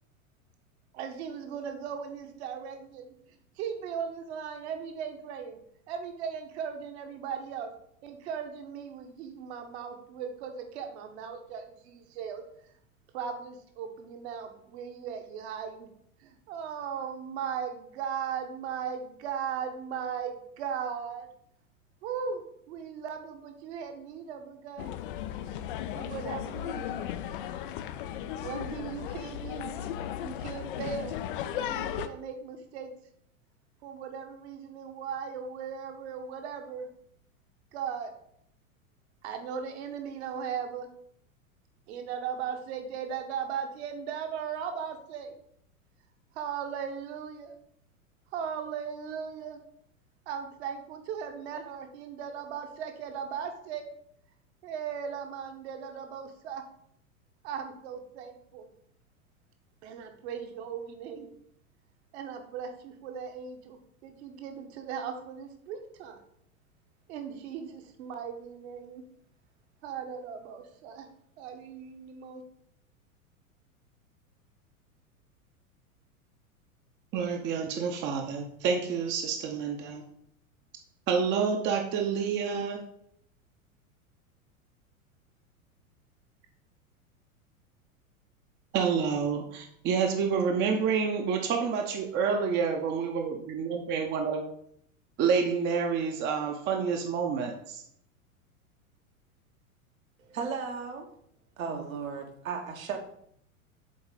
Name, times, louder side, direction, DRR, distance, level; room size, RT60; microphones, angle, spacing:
voice 1, 0.9-5.6 5.9-7.7 8.0-12.5 13.1-15.9 16.2-21.3 22.0-25.0 25.9-27.1 28.4-29.7 30.2-31.1 31.5-32.9 33.8-36.9 37.7-38.1 39.2-40.9 41.9-45.4 46.3-47.6 48.3-49.6 50.3-53.9 54.6-56.6 57.4-58.7 59.8-61.3 62.1-66.2 67.1-69.0 69.8-71.1 71.4-72.4, right 7 dB, 50° right, 6 dB, 1.1 m, -38 dB
sound 1, 24.8-32.1, left 10 dB, 40° left, 0.4 m, -36 dB
voice 2, 77.1-80.0 81.1-82.8 88.7-94.4 95.2-97.8, right 6 dB, 25° right, 3 dB, 0.7 m, -28 dB
voice 3, 100.2-101.1 101.6-103.0, right 5 dB, 65° right, 3 dB, 1.3 m, -35 dB
7.5 x 3.9 x 3.8 m, 0.70 s
figure-of-eight pair, 95°, 43 cm